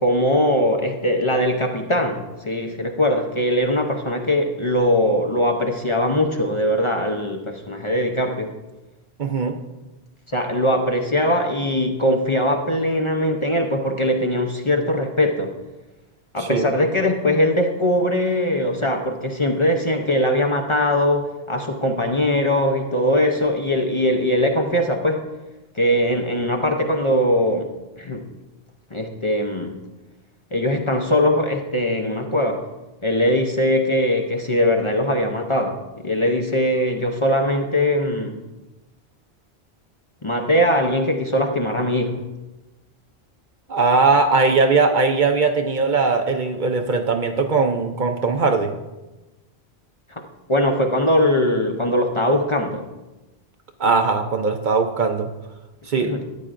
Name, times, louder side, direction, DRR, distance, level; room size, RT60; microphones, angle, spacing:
voice 1, 0.0-8.5 10.3-15.5 16.3-25.2 25.7-27.7 28.0-28.3 28.9-29.8 30.5-32.7 33.0-38.5 40.2-42.2 50.1-52.9 56.0-56.2, left 1 dB, 30° left, 3 dB, 0.7 m, -21 dB
voice 2, 9.2-9.6 16.4-16.6 43.7-48.7 53.8-55.3 55.9-56.1, right 4 dB, 55° right, 6 dB, 0.7 m, -19 dB
13.5 x 9.7 x 2.5 m, 1.1 s
omnidirectional pair, 1.1 m